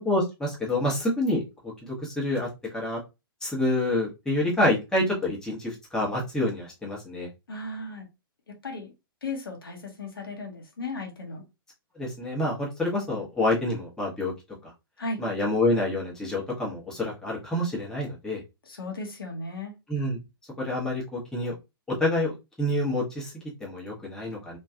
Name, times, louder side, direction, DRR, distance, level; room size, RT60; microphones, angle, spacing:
voice 1, 0.0-3.0 3.4-7.3 11.9-14.3 14.6-14.7 15.2-18.4 19.9-20.2 20.6-21.5 21.9-24.6, left 1 dB, 5° left, 1.0 m, -27 dB
voice 2, 7.5-8.1 8.6-8.9 9.2-11.4 15.0-15.2 18.7-19.7, left 2 dB, 70° left, 1.0 m, -35 dB
3.1 x 2.5 x 2.3 m
figure-of-eight pair, 115°, 12 cm